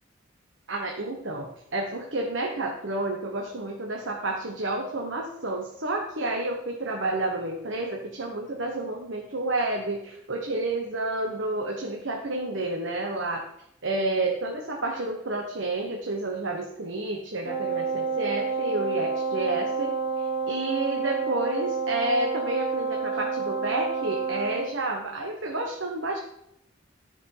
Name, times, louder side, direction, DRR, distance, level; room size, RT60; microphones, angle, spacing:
voice 1, 0.7-13.5 13.8-26.2, right 2 dB, 65° right, 1 dB, 1.2 m, -30 dB
Wind instrument woodwind instrument, 17.4-24.7, right 5 dB, 30° right, 1.0 m, -29 dB
12.5 x 5.3 x 5.7 m, 0.76 s
head